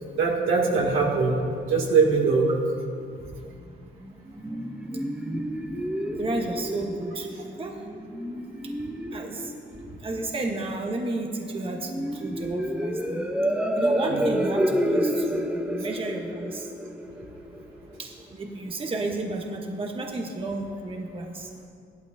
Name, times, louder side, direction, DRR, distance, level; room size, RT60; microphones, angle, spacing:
voice 1, 0.2-2.5 14.1-14.2, right 4 dB, 85° right, -3 dB, 2.5 m, -22 dB
sound 1, 4.0-18.0, equal, 5° right, 0.8 m, -30 dB
voice 2, 6.2-7.3 7.6-7.7 9.1-9.5 10.0-13.2 13.8-16.7 18.0-21.5, right 2 dB, 25° right, 1 dB, 1.1 m, -32 dB
16.0 x 12.0 x 2.7 m, 2.4 s
cardioid pair, 90°, 20 cm